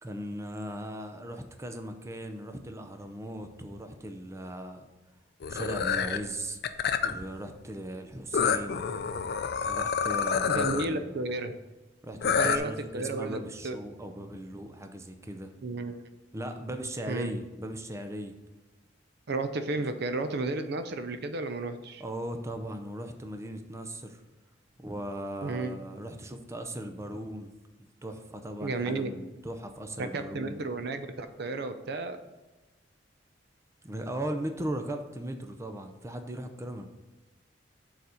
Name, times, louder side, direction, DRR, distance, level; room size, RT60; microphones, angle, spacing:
voice 1, 0.0-4.9 5.5-6.6 7.0-8.8 9.6-11.2 12.0-15.5 16.3-18.3 19.8-19.9 22.0-24.2 24.8-27.5 27.8-30.6 33.8-36.9, right 1 dB, 15° right, 6 dB, 0.6 m, -38 dB
sound 1, 5.4-6.2 6.6-7.2 8.3-10.9 12.2-12.6, left 6 dB, 55° left, 0.5 m, -28 dB
voice 2, 10.5-11.5 12.3-13.8 15.6-16.0 17.1-17.4 19.3-22.0 25.4-25.7 28.6-29.1 30.0-32.2, right 3 dB, 60° right, 9 dB, 0.5 m, -33 dB
6.9 x 4.1 x 6.3 m, 1.1 s
head